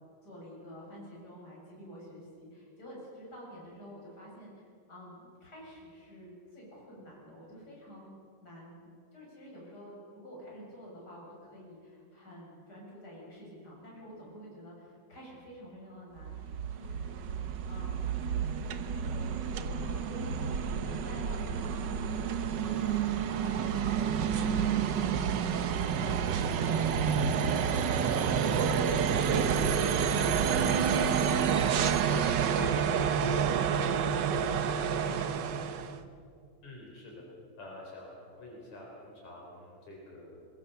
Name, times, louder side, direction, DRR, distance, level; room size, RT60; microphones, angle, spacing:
voice 1, 0.2-8.1 8.4-8.9 9.1-17.2 17.7-18.2 18.8-33.1 33.4-34.1 34.4-36.1, equal, 30° left, -4 dB, 8.4 m, -49 dB
sound 1, 16.2-36.0, right 7 dB, 75° right, 1.0 m, -29 dB
Car / Engine, 19.8-24.4, right 3 dB, 55° right, 5.1 m, -47 dB
voice 2, 36.6-37.2 37.6-40.4, left 2 dB, 70° left, -2 dB, 5.8 m, -48 dB
24.5 x 21.5 x 7.0 m, 2.4 s
omnidirectional pair, 3.3 m